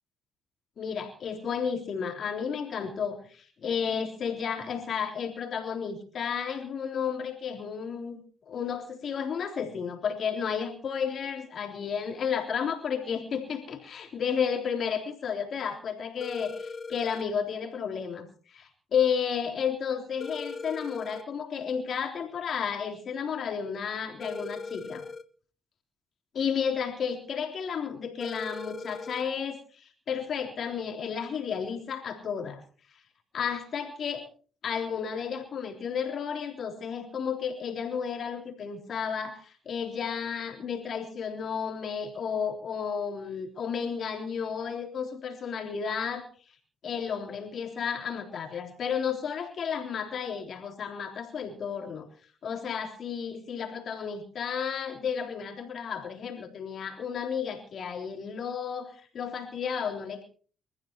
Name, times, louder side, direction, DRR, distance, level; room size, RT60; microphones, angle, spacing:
voice 1, 0.8-25.0 26.3-32.6 32.9-33.0 33.3-34.3 34.6-46.3 46.8-52.1 52.4-60.2, left 7 dB, 60° left, 3 dB, 3.6 m, -32 dB
sound 1, 16.2-17.2 20.2-21.2 24.2-25.2 28.2-29.2, left 4 dB, 35° left, 1.2 m, -39 dB
27.0 x 14.5 x 3.0 m, 0.42 s
supercardioid pair, 65°, 0 cm